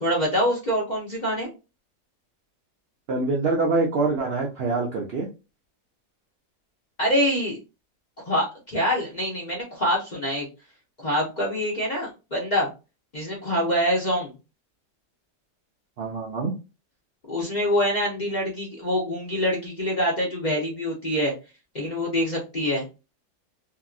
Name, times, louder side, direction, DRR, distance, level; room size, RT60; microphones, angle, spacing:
voice 1, 0.0-1.5 7.0-7.6 8.3-10.5 11.0-12.7 13.1-14.3 17.3-21.3 21.7-22.8, equal, 40° left, -4 dB, 0.7 m, -25 dB
voice 2, 3.1-5.3 16.0-16.5, right 3 dB, 70° right, -1 dB, 0.5 m, -25 dB
2.8 x 2.7 x 2.4 m, 0.29 s
omnidirectional pair, 1.7 m